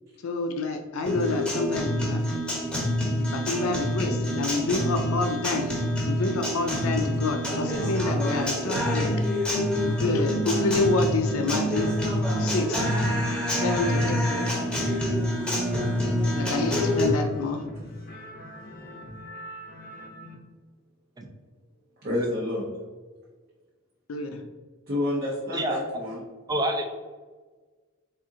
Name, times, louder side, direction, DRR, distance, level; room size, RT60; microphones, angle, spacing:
voice 1, 0.2-2.2 3.2-5.7 6.0-9.2 9.8-11.9 12.2-12.9 13.5-14.5 16.4-17.6 24.1-24.4, left 3 dB, 90° left, 4 dB, 0.4 m, -28 dB
Guitar, 1.1-17.1, equal, 5° left, 0.8 m, -26 dB
sound 1, 9.8-20.4, left 1 dB, 45° left, 0.6 m, -41 dB
voice 2, 16.1-16.5 22.0-22.7 24.9-26.2, left 1 dB, 50° right, -5 dB, 0.7 m, -29 dB
voice 3, 26.5-26.9, right 1 dB, 20° right, 3 dB, 0.4 m, -27 dB
3.7 x 2.5 x 3.7 m, 1.4 s
head